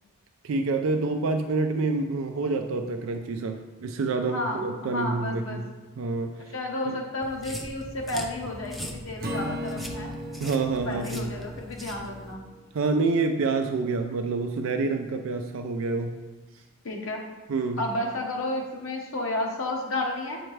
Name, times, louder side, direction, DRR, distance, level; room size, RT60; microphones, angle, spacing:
voice 1, 0.4-5.6 6.0-6.5 6.9-7.0 10.4-11.4 12.7-16.2 17.5-17.8, right 3 dB, 75° right, 5 dB, 0.4 m, -27 dB
voice 2, 4.1-5.6 6.5-10.1 10.8-12.4 16.8-17.2 17.8-20.4, left 1 dB, 80° left, 1 dB, 1.0 m, -32 dB
sound 1, 7.2-12.3, equal, ahead, 0.5 m, -40 dB
Acoustic guitar / Strum, 9.2-12.5, equal, 45° right, 0.7 m, -36 dB
7.7 x 4.3 x 3.2 m, 1.2 s
head